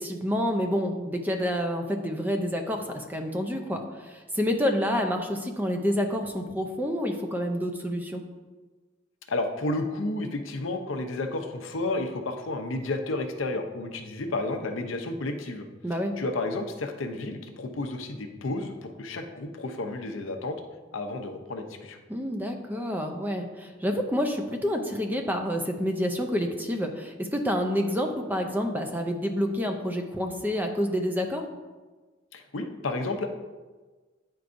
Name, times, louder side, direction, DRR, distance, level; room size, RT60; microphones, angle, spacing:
voice 1, 0.0-8.2 15.8-16.2 22.1-31.5, equal, 10° right, 4 dB, 0.5 m, -28 dB
voice 2, 9.3-15.6 16.2-20.6 20.9-22.0 32.3-33.3, left 2 dB, 90° left, 5 dB, 0.7 m, -31 dB
9.5 x 4.6 x 2.6 m, 1.3 s
head